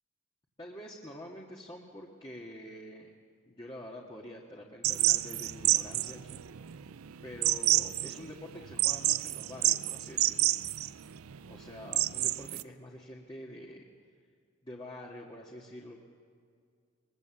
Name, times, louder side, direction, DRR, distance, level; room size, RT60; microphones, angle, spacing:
voice 1, 0.6-3.1 3.5-6.4 6.7-6.9 7.2-10.5 11.5-13.8 14.6-16.0, left 1 dB, 25° left, -2 dB, 1.7 m, -46 dB
sound 1, 4.8-12.6, right 15 dB, 90° right, 0.5 m, -29 dB
23.0 x 21.5 x 7.1 m, 2.2 s
head